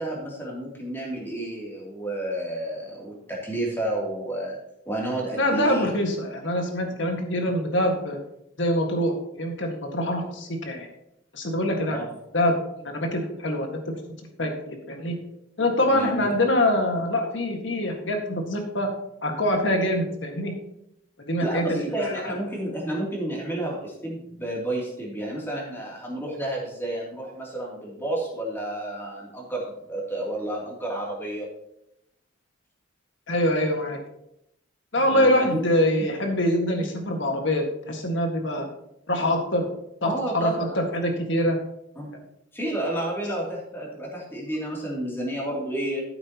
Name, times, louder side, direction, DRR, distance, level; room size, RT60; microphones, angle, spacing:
voice 1, 0.0-4.6 4.8-5.9 11.9-12.0 15.9-16.3 21.4-31.5 35.1-35.7 40.0-40.9 42.0-42.2 42.5-46.0, right 1 dB, 10° left, -3 dB, 2.8 m, -31 dB
voice 2, 5.4-8.2 8.6-10.9 11.3-12.0 12.3-12.6 12.8-14.0 14.4-15.2 15.6-18.9 19.2-20.5 21.3-22.4 33.3-34.0 34.9-38.7 39.1-39.7 40.0-41.6, left 1 dB, 65° left, 3 dB, 1.8 m, -24 dB
13.5 x 7.9 x 3.0 m, 0.80 s
head